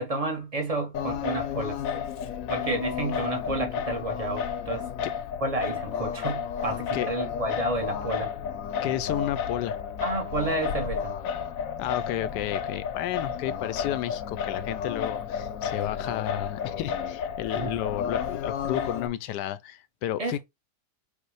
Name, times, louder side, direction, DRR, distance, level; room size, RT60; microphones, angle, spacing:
voice 1, 0.0-1.8 2.5-4.9 5.4-8.3 10.0-11.1 17.6-17.7 20.2-20.3, right 2 dB, 30° right, 0.7 m, -30 dB
Singing, 0.9-19.1, left 7 dB, 65° left, 0.9 m, -32 dB
voice 2, 6.7-7.1 8.8-9.8 11.8-20.4, left 12 dB, 85° left, 1.2 m, -32 dB
5.2 x 2.1 x 4.8 m
omnidirectional pair, 1.8 m